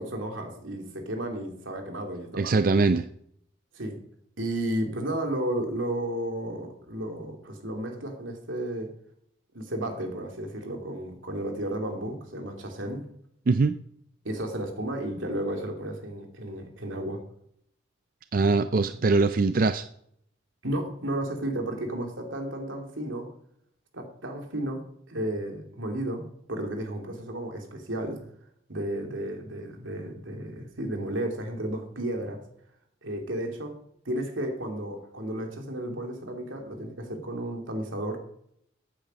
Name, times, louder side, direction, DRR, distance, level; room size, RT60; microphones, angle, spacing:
voice 1, 0.0-2.6 3.7-4.0 4.4-8.9 9.5-13.1 14.2-17.2 20.6-23.3 23.9-28.3 28.7-32.4 33.0-33.8 34.0-38.2, right 1 dB, 90° right, 3 dB, 2.9 m, -33 dB
voice 2, 2.4-3.1 13.5-13.8 18.3-19.8, right 3 dB, 45° right, 10 dB, 0.4 m, -22 dB
14.5 x 8.9 x 5.3 m, 0.70 s
head